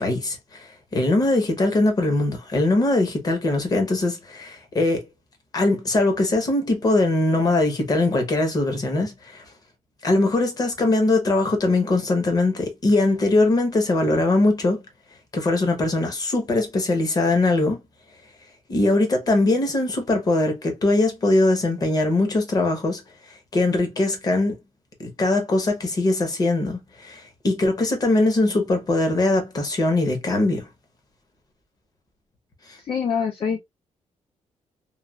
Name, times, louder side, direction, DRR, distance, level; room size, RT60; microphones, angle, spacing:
voice 1, 0.0-5.0 5.5-9.4 10.0-14.8 15.3-17.8 18.7-23.0 23.5-24.6 25.0-30.7, left 2 dB, 30° left, 0.9 m, -21 dB
voice 2, 32.8-33.6, left 6 dB, 45° left, 0.5 m, -25 dB
3.1 x 2.3 x 2.3 m
wide cardioid pair, 155°, 12 cm